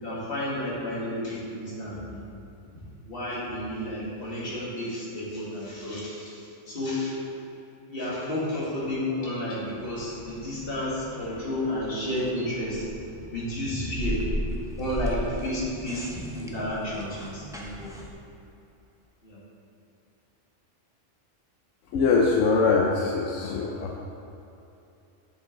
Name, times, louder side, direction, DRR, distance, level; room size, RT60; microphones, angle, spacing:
voice 1, 0.0-2.2 3.1-6.4 6.7-7.1 7.9-12.9 13.3-14.5 14.8-16.1 16.4-17.9 19.2-19.4, left 1 dB, 50° left, -7 dB, 2.2 m, -31 dB
sound 1, 9.8-18.1, equal, 5° right, 0.6 m, -37 dB
voice 2, 21.9-24.0, left 4 dB, 85° left, 0 dB, 1.0 m, -23 dB
7.6 x 6.9 x 3.9 m, 2.8 s
omnidirectional pair, 1.2 m